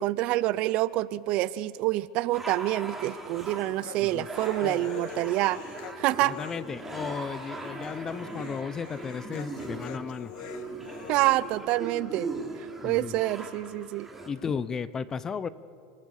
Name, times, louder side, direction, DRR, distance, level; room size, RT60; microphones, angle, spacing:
voice 1, 0.0-5.6 6.0-6.3 11.1-12.3 12.8-14.1, right 16 dB, 45° right, 18 dB, 0.6 m, -27 dB
sound 1, 2.3-14.3, right 2 dB, 10° right, 3.2 m, -40 dB
Human voice, 3.3-11.3, left 12 dB, 55° left, 1.0 m, -46 dB
voice 2, 6.3-10.3 12.8-13.2 14.3-15.5, left 6 dB, 20° left, 16 dB, 0.8 m, -34 dB
30.0 x 18.0 x 6.6 m, 2.2 s
supercardioid pair, 140°, 2 cm